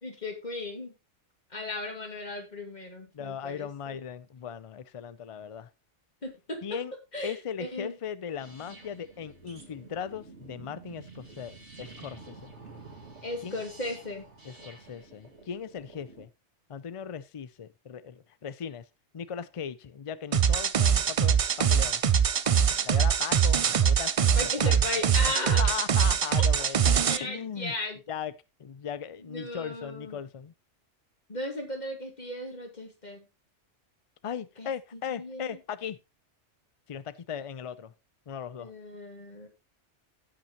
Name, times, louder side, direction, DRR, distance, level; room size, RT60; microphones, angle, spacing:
voice 1, 0.0-0.9 1.5-4.0 6.2-6.6 7.1-8.0 13.2-14.2 24.4-25.7 27.1-28.0 29.3-30.2 31.3-33.2 34.6-34.7 35.1-35.6 38.6-39.5, left 1 dB, 40° left, 2.3 m, -36 dB
voice 2, 3.1-5.7 6.6-6.9 7.2-12.5 13.4-13.6 14.4-16.3 16.7-18.8 19.1-22.0 22.8-24.7 25.3-27.7 28.1-28.3 28.6-30.5 34.2-36.0 36.9-37.9 38.3-38.7, left 8 dB, 55° left, 0.3 m, -38 dB
sound 1, 8.4-16.2, right 3 dB, 70° right, 2.3 m, -49 dB
sound 2, 20.3-27.2, right 7 dB, 55° right, 0.4 m, -23 dB
16.5 x 5.7 x 2.9 m
omnidirectional pair, 1.2 m